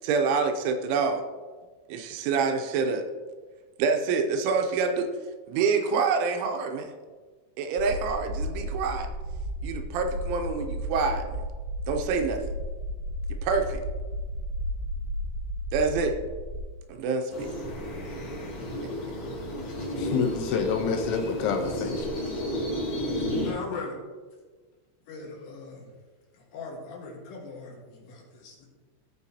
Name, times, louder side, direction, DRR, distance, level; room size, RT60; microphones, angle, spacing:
voice 1, 0.0-1.2 1.9-3.0 3.8-5.1 5.5-6.9 7.6-9.1 9.6-11.4 11.9-12.4 13.4-13.8 15.7-16.2 16.9-17.5, right 5 dB, 80° right, 5 dB, 3.1 m, -26 dB
sound 1, 7.8-16.6, equal, 35° right, 1.3 m, -33 dB
sound 2, 17.3-23.5, equal, 50° left, 3.4 m, -32 dB
voice 2, 20.0-22.2, left 6 dB, 85° left, 4 dB, 3.1 m, -28 dB
voice 3, 23.4-24.0 25.1-25.9 26.3-28.7, left 4 dB, 65° left, -2 dB, 3.3 m, -39 dB
16.0 x 5.7 x 2.8 m, 1.4 s
omnidirectional pair, 5.6 m